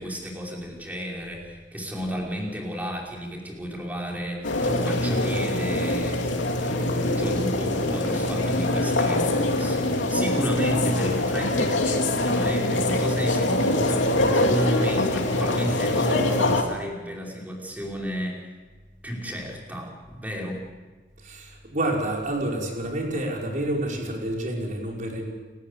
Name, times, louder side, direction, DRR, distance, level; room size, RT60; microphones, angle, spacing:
voice 1, 0.0-6.3 6.6-18.5 19.0-20.6, equal, 10° right, -2 dB, 5.1 m, -33 dB
sound 1, 4.4-16.6, left 1 dB, 85° left, 2.9 m, -24 dB
voice 2, 21.2-25.2, right 1 dB, 45° right, -1 dB, 5.3 m, -28 dB
30.0 x 14.0 x 8.3 m, 1.3 s
head